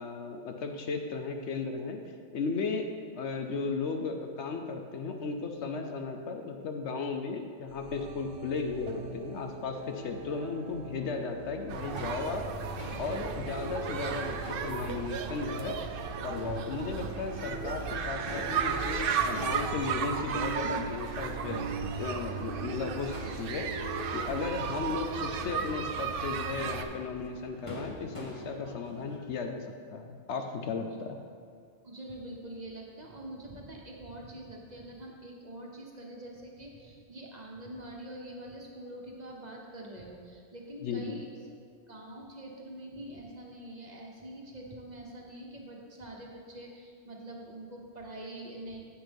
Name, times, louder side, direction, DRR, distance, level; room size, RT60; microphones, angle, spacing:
voice 1, 0.0-2.0 2.3-2.9 3.2-12.5 13.0-15.7 16.2-21.7 22.0-23.7 24.1-29.7 29.9-31.2 40.8-41.2, left 4 dB, 70° left, 5 dB, 0.9 m, -35 dB
sound 1, 7.7-25.6, right 2 dB, 80° right, 1.2 m, -42 dB
sound 2, 11.7-26.8, right 6 dB, 60° right, 0.6 m, -35 dB
Crowd / Fireworks, 11.9-29.2, equal, 25° left, 1.1 m, -49 dB
voice 2, 31.8-41.3 41.9-48.8, right 1 dB, 35° right, -1 dB, 1.1 m, -45 dB
9.8 x 8.0 x 3.5 m, 2.2 s
omnidirectional pair, 1.3 m